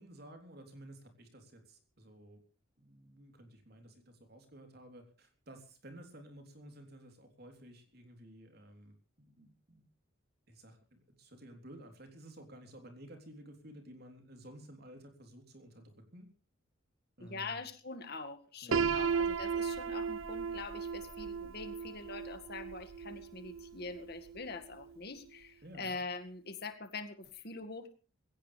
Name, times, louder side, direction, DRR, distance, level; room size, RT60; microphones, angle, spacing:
voice 1, 0.0-2.4 2.8-9.9 10.5-16.3 17.2-17.6 18.6-19.0 25.6-26.0, right 1 dB, 50° right, 5 dB, 3.6 m, -53 dB
voice 2, 17.2-27.9, left 3 dB, 50° left, 8 dB, 2.0 m, -44 dB
Piano, 18.7-24.6, right 6 dB, 75° right, 0.8 m, -36 dB
20.5 x 17.0 x 3.4 m, 0.35 s
head